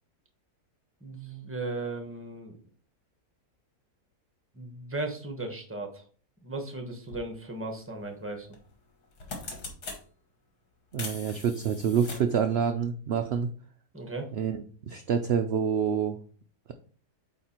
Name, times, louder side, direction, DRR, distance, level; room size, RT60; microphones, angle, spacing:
voice 1, 1.0-2.6 4.5-6.1 6.4-8.5 13.9-14.3, right 2 dB, 10° right, 4 dB, 0.9 m, -36 dB
sound 1, 7.1-7.2 8.5-8.7 9.0-10.0 10.9-12.4, left 3 dB, 75° left, 2.1 m, -40 dB
voice 2, 10.9-13.5 14.3-14.6 14.9-16.2, right 7 dB, 75° right, 7 dB, 0.5 m, -27 dB
8.5 x 3.3 x 4.4 m, 0.43 s
omnidirectional pair, 1.7 m